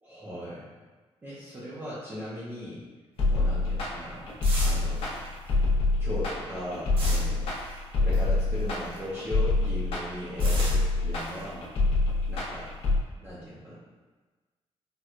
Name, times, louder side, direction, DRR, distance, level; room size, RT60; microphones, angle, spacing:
voice 1, 0.0-0.7 1.2-2.8 3.3-5.2 6.0-7.5 8.0-11.7 12.3-12.7 13.2-13.8, equal, 20° right, -10 dB, 0.5 m, -38 dB
sound 1, 3.2-13.0, left 2 dB, 55° left, 0.7 m, -26 dB
sound 2, 3.2-9.2 9.5-12.9, right 1 dB, 60° right, 0.8 m, -41 dB
4.3 x 2.1 x 2.4 m, 1.3 s
wide cardioid pair, 180°, 11 cm